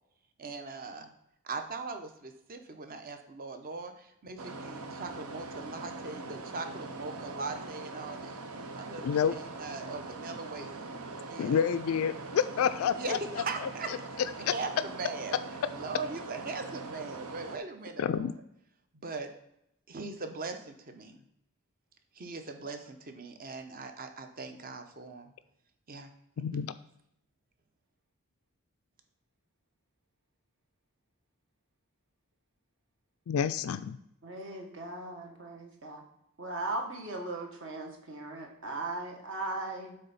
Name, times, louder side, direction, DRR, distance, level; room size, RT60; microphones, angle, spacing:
voice 1, 0.4-1.1 1.4-8.4 8.7-10.9 11.3-11.6 12.9-13.9 14.5-15.4 15.7-18.3 18.9-19.3 19.9-21.2 22.1-25.3 25.9-26.1 26.4-26.6, right 4 dB, 40° right, 6 dB, 0.7 m, -40 dB
sound 1, 4.4-17.6, right 3 dB, 85° right, 0.7 m, -42 dB
voice 2, 9.0-9.3 11.4-13.2 14.5-14.6 18.0-18.3 26.4-26.7 33.3-34.0, left 7 dB, 70° left, 12 dB, 0.3 m, -28 dB
voice 3, 34.2-36.0 36.4-39.9, right 2 dB, 60° right, 1 dB, 1.4 m, -38 dB
8.0 x 3.4 x 5.5 m, 0.78 s
head